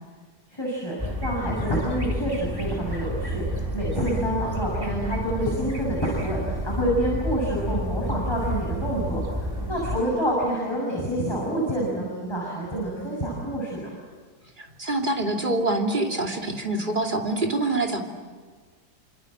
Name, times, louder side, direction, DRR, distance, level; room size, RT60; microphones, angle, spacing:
voice 1, 0.5-13.9, right 1 dB, 15° left, -4 dB, 7.1 m, -28 dB
sound 1, 1.0-10.0, equal, 10° right, 3.7 m, -30 dB
voice 2, 14.6-18.0, right 2 dB, 25° right, 2 dB, 2.7 m, -25 dB
27.0 x 26.5 x 7.9 m, 1.5 s
omnidirectional pair, 1.9 m